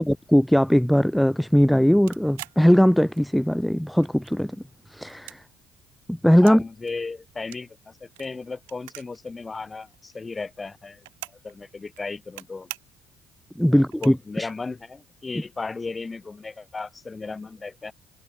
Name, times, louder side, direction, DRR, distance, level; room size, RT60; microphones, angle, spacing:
voice 1, 0.0-4.5 4.9-5.4 6.1-6.6 13.6-14.5, equal, ahead, 0.6 m, -19 dB
sound 1, 2.1-3.5 3.8-4.6 5.0-6.6 6.9-9.3 9.5-9.6 9.8-11.5 11.8-12.4 12.7-13.1 13.5-13.6 13.9-14.5, right 23 dB, 70° right, 6.2 m, -43 dB
voice 2, 6.4-11.1 11.4-12.7 13.7-17.9, left 4 dB, 25° left, 4.8 m, -35 dB
figure-of-eight pair, 50°, 0 cm